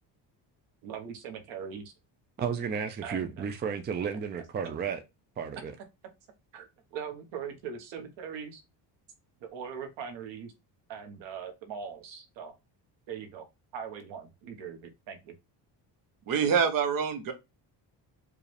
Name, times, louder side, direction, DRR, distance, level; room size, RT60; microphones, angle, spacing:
voice 1, 0.8-1.9 3.0-3.5 6.5-8.6 9.4-10.5 10.9-12.5 13.1-13.5 13.7-15.3, right 7 dB, 90° right, 1.3 m, -41 dB
voice 2, 2.4-5.0 5.4-5.7, right 6 dB, 25° right, 0.4 m, -33 dB
voice 3, 16.3-17.3, right 6 dB, 50° right, 0.9 m, -26 dB
4.8 x 2.5 x 3.3 m
cardioid pair, 150°, 43 cm